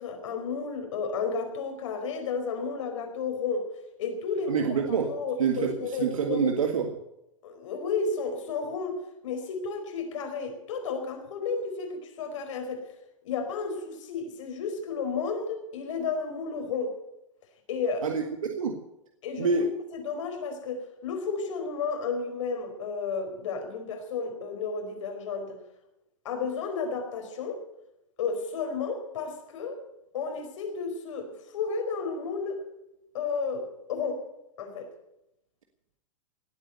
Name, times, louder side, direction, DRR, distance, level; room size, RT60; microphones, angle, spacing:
voice 1, 0.0-3.7 4.0-6.5 7.4-12.9 13.2-16.9 17.7-18.1 19.2-19.5 19.9-25.6 26.2-27.6 28.2-29.8 30.1-32.6 33.1-34.2 34.6-34.9, left 5 dB, 70° left, 5 dB, 4.6 m, -32 dB
voice 2, 4.5-5.1 5.4-6.9 18.0-18.8 19.4-19.7, right 5 dB, 90° right, 4 dB, 1.9 m, -27 dB
18.5 x 8.6 x 8.1 m, 0.86 s
hypercardioid pair, 135°, 17 cm